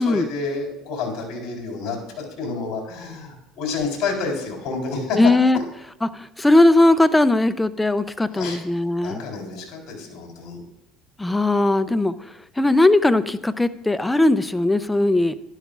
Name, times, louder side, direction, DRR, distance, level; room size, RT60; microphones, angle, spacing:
voice 1, 0.0-5.3 8.3-8.6 9.0-10.6, left 4 dB, 60° left, 0 dB, 3.6 m, -29 dB
voice 2, 5.2-5.6 6.0-9.2 11.2-15.3, left 2 dB, 10° left, 14 dB, 0.5 m, -19 dB
12.0 x 11.0 x 2.4 m, 0.85 s
supercardioid pair, 100°, 0 cm